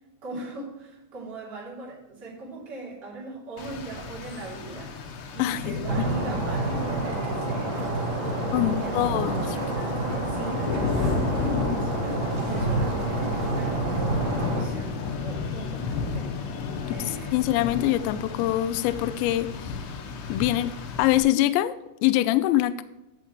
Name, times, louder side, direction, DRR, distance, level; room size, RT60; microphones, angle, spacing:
voice 1, 0.2-4.9 5.3-7.8 8.2-9.9 10.2-16.3 16.8-17.4, right 2 dB, 25° right, -5 dB, 2.6 m, -39 dB
Rain, 3.6-21.2, left 5 dB, 75° left, 2.9 m, -33 dB
sound 1, 5.9-14.6, right 2 dB, 45° right, 2.7 m, -28 dB
voice 2, 8.5-9.6 16.9-19.7 20.3-20.7 21.0-21.7 22.0-22.8, left 14 dB, 90° left, 13 dB, 2.5 m, -24 dB
10.5 x 7.2 x 3.1 m, 0.97 s
omnidirectional pair, 5.8 m